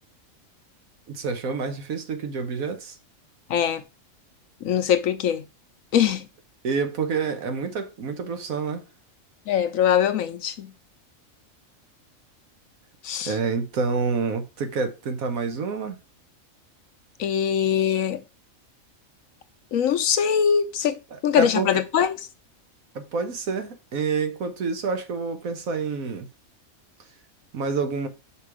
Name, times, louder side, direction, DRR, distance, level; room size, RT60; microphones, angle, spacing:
voice 1, 1.1-3.0 6.6-8.8 13.3-16.0 21.1-21.8 22.9-26.3 27.5-28.1, right 5 dB, 85° right, 1.5 m, -28 dB
voice 2, 3.5-3.8 4.6-5.4 5.9-6.3 9.5-10.7 13.0-13.3 17.2-18.2 19.7-21.0 21.2-22.2, left 8 dB, 75° left, 1.1 m, -22 dB
5.8 x 4.8 x 4.8 m
omnidirectional pair, 1.4 m